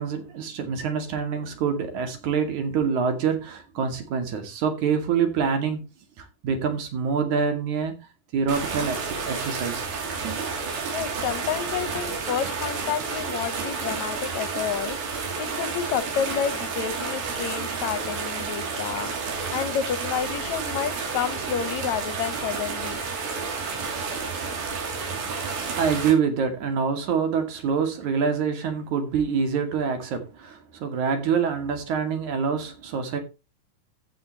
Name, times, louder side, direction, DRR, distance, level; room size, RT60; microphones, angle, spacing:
voice 1, 0.0-5.9 6.2-8.0 8.3-9.8 10.2-10.4 25.8-33.2, right 6 dB, 60° right, 3.7 m, -26 dB
sound 1, 8.5-26.1, right 5 dB, 90° right, 4.7 m, -30 dB
voice 2, 10.9-15.0 15.4-19.1 19.5-23.0, left 8 dB, 65° left, 2.3 m, -30 dB
14.5 x 8.2 x 3.1 m
omnidirectional pair, 4.1 m